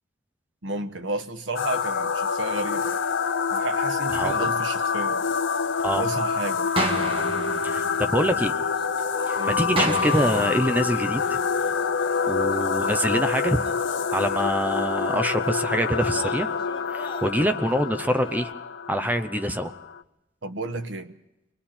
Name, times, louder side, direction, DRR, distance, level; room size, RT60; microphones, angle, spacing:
voice 1, 0.6-3.0 3.5-5.2 5.9-6.7 9.3-9.6 20.4-21.2, right 2 dB, 85° right, 8 dB, 1.3 m, -32 dB
sound 1, 1.6-20.0, left 5 dB, 80° left, 0.7 m, -26 dB
voice 2, 4.1-4.5 5.8-6.0 7.6-8.5 9.3-11.4 12.2-13.6 14.1-16.5 16.9-18.5 18.9-19.7, equal, 10° right, 8 dB, 0.7 m, -25 dB
sound 2, 6.8-8.8 9.8-11.8, right 1 dB, 30° right, 1.7 m, -31 dB
sound 3, 7.8-18.5, left 2 dB, 25° left, 1.6 m, -46 dB
29.5 x 22.0 x 4.4 m, 0.89 s
head